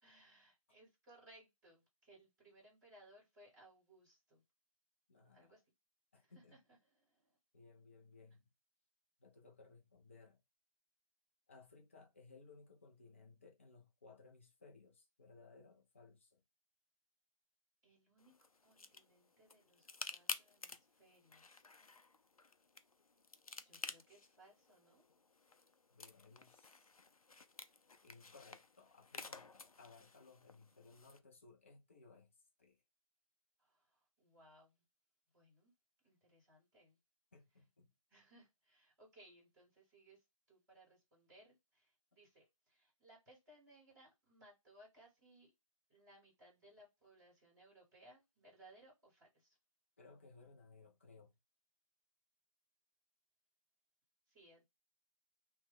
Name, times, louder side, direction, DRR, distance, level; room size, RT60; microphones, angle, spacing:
voice 1, 0.0-4.4 5.3-5.6 6.2-7.4 17.8-18.3 18.6-21.6 23.6-25.0 33.6-34.8 35.3-35.7 36.0-37.0 38.1-45.5 45.9-49.6 54.3-54.6, right 1 dB, 5° right, 1.1 m, -65 dB
voice 2, 5.1-5.5 6.1-6.6 7.5-8.5 9.2-10.4 11.5-16.4 25.9-27.0 28.0-32.8 37.3-37.9 50.0-51.4, left 4 dB, 20° left, 0.5 m, -62 dB
sound 1, 18.2-31.2, left 4 dB, 90° left, 0.5 m, -52 dB
2.9 x 2.3 x 3.4 m
figure-of-eight pair, 160°, 18 cm